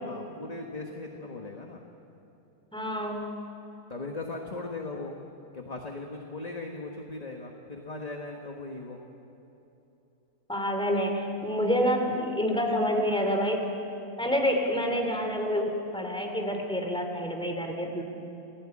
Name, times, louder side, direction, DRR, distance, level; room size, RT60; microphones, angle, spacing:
voice 1, 0.0-1.8 3.9-5.2 5.5-9.0, left 3 dB, 25° left, 1 dB, 1.5 m, -38 dB
voice 2, 2.7-3.3 10.5-13.7 14.2-18.0, equal, 5° left, 3 dB, 2.9 m, -28 dB
28.0 x 16.5 x 8.7 m, 2.9 s
omnidirectional pair, 1.6 m